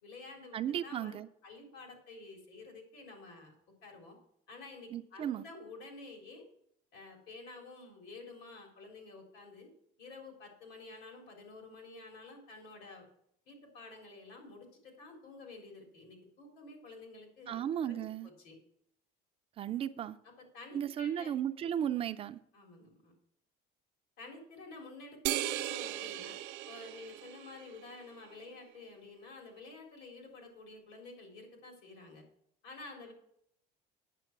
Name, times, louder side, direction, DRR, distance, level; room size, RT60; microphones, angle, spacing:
voice 1, 0.0-1.2 1.4-3.5 3.8-4.2 4.5-6.5 6.9-9.7 10.0-13.1 13.5-18.6 20.4-21.4 22.5-23.1 24.2-26.4 26.7-32.2 32.6-33.1, left 3 dB, 70° left, 2 dB, 3.8 m, -50 dB
voice 2, 0.5-1.3 4.9-5.4 17.5-18.3 19.6-20.2 20.7-22.4, right 10 dB, 35° right, 10 dB, 0.4 m, -35 dB
sound 1, 25.3-28.0, right 15 dB, 85° right, 0.7 m, -37 dB
9.1 x 7.6 x 5.9 m, 0.73 s
cardioid pair, 165°, 17 cm